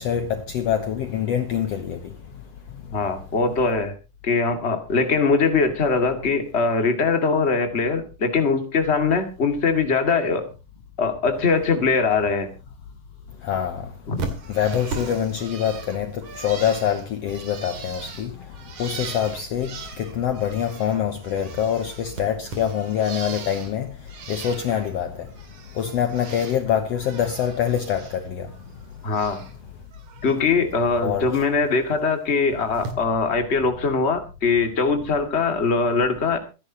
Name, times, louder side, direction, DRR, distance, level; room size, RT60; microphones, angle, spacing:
voice 1, 0.0-2.0 13.4-13.9 14.5-18.3 18.8-23.9 24.3-25.3 25.8-28.5 31.0-31.3, left 9 dB, 65° left, 1.8 m, -25 dB
voice 2, 2.9-3.9 4.2-10.4 11.0-12.5 14.1-14.2 29.0-29.4 30.2-36.4, left 4 dB, 25° left, 2.0 m, -22 dB
Bird, 14.2-21.0 21.2-23.7 24.1-24.9 25.3-26.6 26.9-28.2 28.5-29.5 29.9-30.3 31.6-31.7 32.7-32.9, right 4 dB, 70° right, 4.0 m, -38 dB
25.5 x 10.5 x 2.9 m
omnidirectional pair, 3.6 m